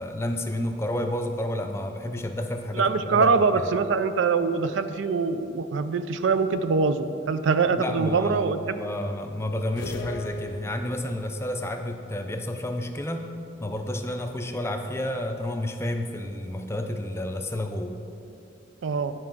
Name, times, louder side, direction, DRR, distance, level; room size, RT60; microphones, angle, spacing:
voice 1, 0.0-3.7 7.8-13.3 13.6-18.0, left 1 dB, 15° left, 4 dB, 0.4 m, -30 dB
voice 2, 2.7-8.8 18.8-19.1, right 4 dB, 65° right, 11 dB, 0.4 m, -23 dB
sound 1, 9.8-11.3, left 1 dB, 65° left, 0.6 m, -38 dB
9.8 x 4.6 x 6.0 m, 2.7 s
head